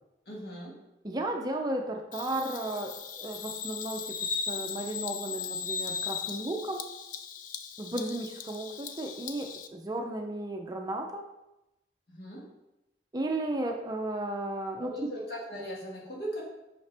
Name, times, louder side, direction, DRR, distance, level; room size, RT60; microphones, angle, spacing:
voice 1, 0.3-0.8 12.1-12.5 14.8-16.4, equal, 65° left, -3 dB, 1.8 m, -39 dB
voice 2, 1.0-4.2 4.5-6.9 7.8-11.2 13.1-15.1, right 1 dB, 20° right, 3 dB, 0.5 m, -34 dB
Bird vocalization bird call bird song, 2.1-9.7, left 6 dB, 50° left, 0.4 m, -37 dB
5.8 x 5.5 x 3.4 m, 0.94 s
head